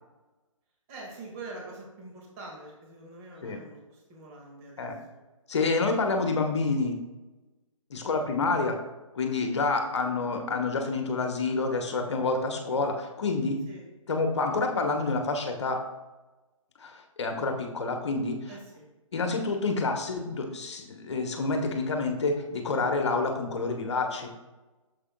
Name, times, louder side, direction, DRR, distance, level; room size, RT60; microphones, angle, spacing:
voice 1, 0.9-5.2 7.9-8.3 13.7-13.8 18.5-18.9, right 2 dB, 25° right, -2 dB, 1.8 m, -45 dB
voice 2, 5.5-7.0 7.9-8.8 9.1-13.6 14.1-15.8 16.8-18.5 19.1-24.3, left 3 dB, 55° left, 4 dB, 1.1 m, -28 dB
9.8 x 6.9 x 2.2 m, 1.1 s
figure-of-eight pair, 140°, 17 cm